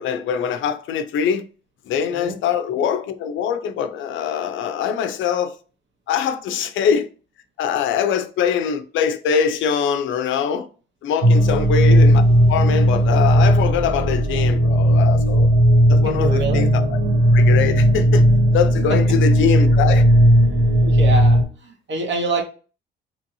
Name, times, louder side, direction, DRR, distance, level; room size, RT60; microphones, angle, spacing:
voice 1, 0.0-1.4 1.9-5.5 6.1-7.1 7.6-10.7 11.0-12.2 12.5-15.5 15.9-17.0 17.3-18.2 18.5-20.1, left 7 dB, 75° left, 0.5 m, -23 dB
sound 1, 11.2-21.4, equal, 85° right, 1.0 m, -15 dB
voice 2, 16.0-16.6 18.9-19.2 20.8-22.4, right 2 dB, 65° right, 1.0 m, -27 dB
3.0 x 2.7 x 2.7 m
cardioid pair, 90°, 20 cm